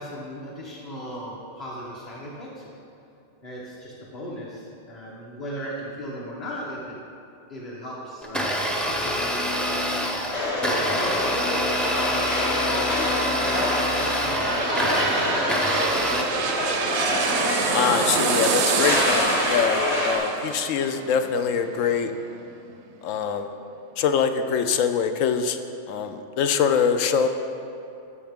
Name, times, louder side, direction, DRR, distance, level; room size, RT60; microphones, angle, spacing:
voice 1, 0.0-2.7 3.4-7.0 7.5-10.1 10.7-11.7 12.6-15.2, equal, 35° left, -6 dB, 1.1 m, -37 dB
Domestic sounds home sounds, 8.2-16.2, equal, ahead, 0.4 m, -26 dB
sound 1, 10.3-20.2, left 1 dB, 50° left, 1.8 m, -26 dB
sound 2, 13.3-22.7 23.2-23.3, right 6 dB, 65° right, 0.8 m, -28 dB
voice 2, 17.7-22.1 23.0-23.5 24.0-25.6 25.9-27.3, left 7 dB, 80° left, 8 dB, 1.0 m, -24 dB
13.5 x 5.8 x 3.6 m, 2.7 s
omnidirectional pair, 1.4 m